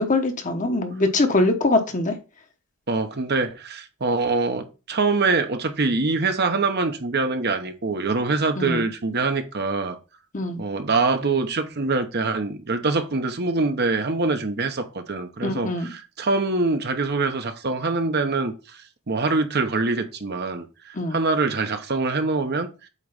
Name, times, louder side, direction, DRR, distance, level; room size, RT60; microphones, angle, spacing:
voice 1, 0.0-2.1 8.6-8.8 10.3-10.6 15.4-15.9 20.9-21.2, left 2 dB, 35° left, 1.0 m, -23 dB
voice 2, 2.9-10.0 10.6-18.8 19.1-22.7, right 3 dB, 50° right, 0.9 m, -24 dB
8.3 x 3.1 x 5.4 m
head